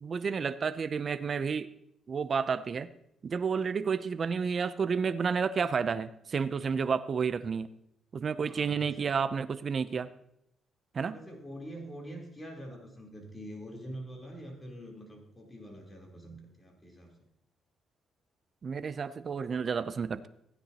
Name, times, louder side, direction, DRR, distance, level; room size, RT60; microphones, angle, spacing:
voice 1, 0.0-1.7 2.1-2.9 3.2-7.7 8.1-10.1 10.9-11.2 18.6-20.3, right 6 dB, 45° right, 13 dB, 0.5 m, -31 dB
voice 2, 8.3-9.2 11.0-17.3, equal, 20° left, -1 dB, 3.7 m, -45 dB
15.5 x 9.8 x 2.9 m, 0.75 s
cardioid pair, 90°, 0 cm